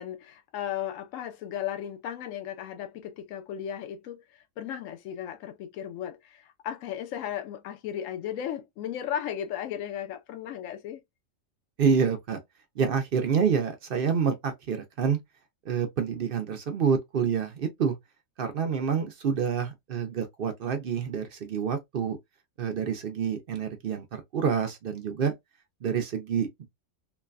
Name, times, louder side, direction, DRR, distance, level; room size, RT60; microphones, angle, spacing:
voice 1, 0.0-4.2 4.6-11.0, left 10 dB, 75° left, 1.0 m, -35 dB
voice 2, 11.8-12.4 12.8-15.2 15.7-18.0 18.4-22.2 22.6-25.3 25.8-26.7, right 6 dB, 55° right, 0.7 m, -27 dB
3.1 x 2.1 x 2.4 m
omnidirectional pair, 1.4 m